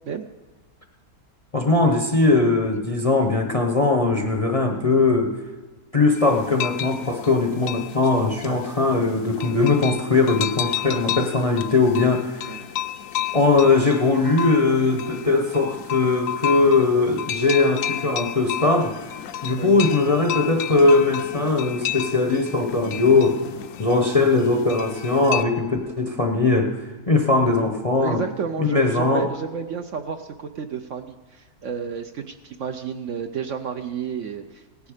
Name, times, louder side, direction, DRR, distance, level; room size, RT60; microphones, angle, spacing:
voice 1, 1.5-5.3 5.9-12.6 13.3-18.9 19.4-23.4 23.8-26.7 27.1-28.2 28.6-29.3, left 3 dB, 30° left, 4 dB, 0.7 m, -20 dB
sound 1, 6.2-25.4, left 11 dB, 65° left, 0.9 m, -32 dB
voice 2, 28.0-34.6, right 6 dB, 65° right, 7 dB, 0.8 m, -31 dB
16.5 x 10.5 x 4.9 m, 1.3 s
omnidirectional pair, 1.7 m